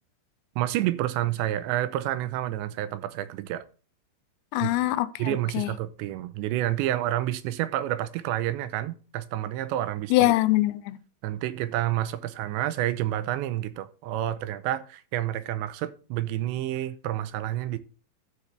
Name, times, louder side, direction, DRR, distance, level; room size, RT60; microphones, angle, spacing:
voice 1, 0.6-3.6 4.6-4.7 5.2-10.3 11.2-17.8, right 13 dB, 90° right, 3.0 m, -29 dB
voice 2, 4.5-5.7 10.1-11.0, left 17 dB, 85° left, 2.8 m, -23 dB
13.0 x 7.3 x 3.3 m
omnidirectional pair, 5.0 m